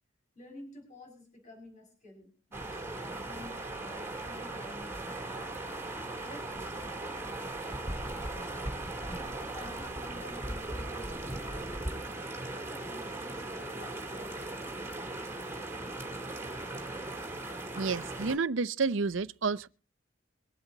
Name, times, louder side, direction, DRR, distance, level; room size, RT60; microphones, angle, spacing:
voice 1, 0.3-5.6 6.2-8.7 9.5-11.9 12.3-14.8, left 1 dB, 40° left, 6.1 m, -51 dB
sound 1, 2.5-18.4, right 2 dB, 15° right, 2.5 m, -38 dB
voice 2, 17.8-19.7, right 4 dB, 70° right, 0.6 m, -30 dB
23.5 x 8.1 x 3.9 m
head